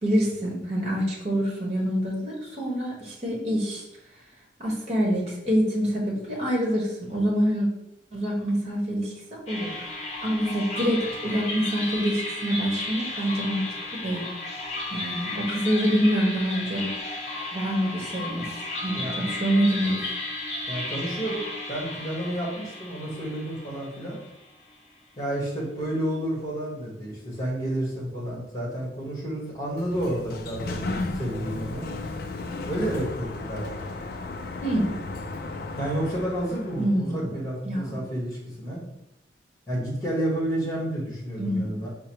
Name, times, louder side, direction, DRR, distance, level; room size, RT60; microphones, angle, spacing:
voice 1, 0.0-3.8 4.6-7.7 8.1-9.7 10.2-13.6 13.9-14.2 14.9-16.9 17.5-18.5 18.8-20.0 34.6-34.9 36.8-37.3 37.6-38.0 41.4-41.7, equal, 35° right, -3 dB, 1.2 m, -26 dB
sound 1, 9.5-24.7, left 2 dB, 35° left, 0.7 m, -34 dB
voice 2, 20.7-24.2 25.2-32.0 32.7-33.8 35.7-38.8 39.7-41.9, right 1 dB, 20° left, -4 dB, 1.2 m, -30 dB
Sliding door, 29.6-37.0, left 3 dB, 55° left, 0.3 m, -34 dB
4.7 x 2.1 x 4.5 m, 0.86 s
head